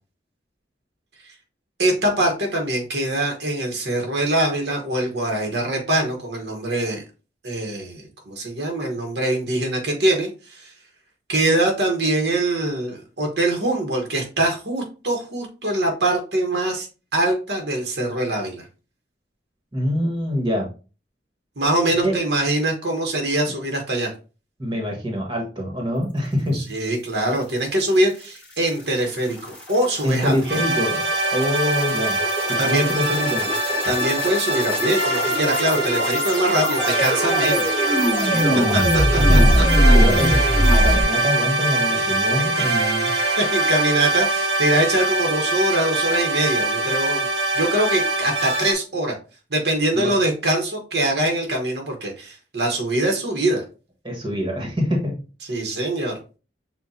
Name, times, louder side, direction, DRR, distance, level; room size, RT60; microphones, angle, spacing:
voice 1, 1.8-7.0 7.4-10.7 11.3-16.9 17.1-18.7 21.6-24.1 26.5-30.6 32.6-32.9 33.8-37.7 39.3-39.9 41.9-42.8 43.4-47.3 47.5-49.1 49.5-53.6 55.5-56.1, right 1 dB, 70° right, 2 dB, 1.2 m, -23 dB
voice 2, 19.7-20.7 22.0-22.1 24.6-26.6 30.0-31.0 31.3-32.2 32.5-33.5 38.3-40.4 40.7-43.1 49.9-50.1 54.0-55.1, equal, 25° right, 0 dB, 1.4 m, -25 dB
sound 1, 28.8-41.0, equal, 5° left, 1.2 m, -22 dB
sound 2, 30.5-48.7, right 1 dB, 85° right, 1.3 m, -23 dB
7.1 x 2.5 x 2.7 m, 0.33 s
head